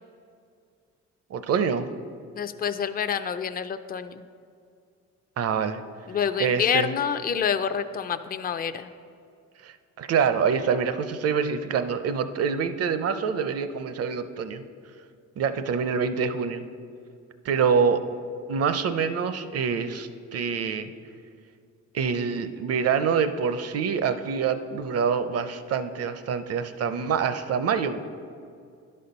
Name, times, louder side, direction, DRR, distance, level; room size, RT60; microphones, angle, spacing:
voice 1, 1.3-1.9 5.4-5.8 6.4-6.9 9.6-14.6 15.4-16.6 17.4-18.0 18.5-20.9 21.9-28.1, right 6 dB, 55° right, 11 dB, 0.6 m, -26 dB
voice 2, 2.3-4.3 6.1-8.9, left 7 dB, 30° left, 11 dB, 0.4 m, -27 dB
11.0 x 4.3 x 5.3 m, 2.3 s
cardioid pair, 90°, 30 cm